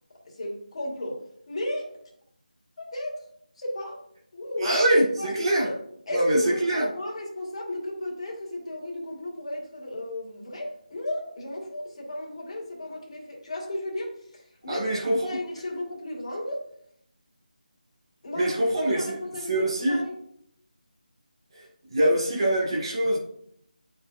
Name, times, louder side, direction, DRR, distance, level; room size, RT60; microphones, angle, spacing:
voice 1, 0.3-1.9 2.8-3.2 3.6-4.0 4.3-4.8 5.2-5.8 6.1-14.9 15.2-16.6 18.2-20.1, left 1 dB, 40° left, -3 dB, 2.5 m, -34 dB
voice 2, 4.6-5.7 6.1-6.9 14.7-15.4 18.3-19.2 19.5-20.0 21.6-23.2, right 1 dB, 35° right, -3 dB, 1.8 m, -24 dB
11.0 x 5.0 x 2.5 m, 0.69 s
figure-of-eight pair, 170°, 5 cm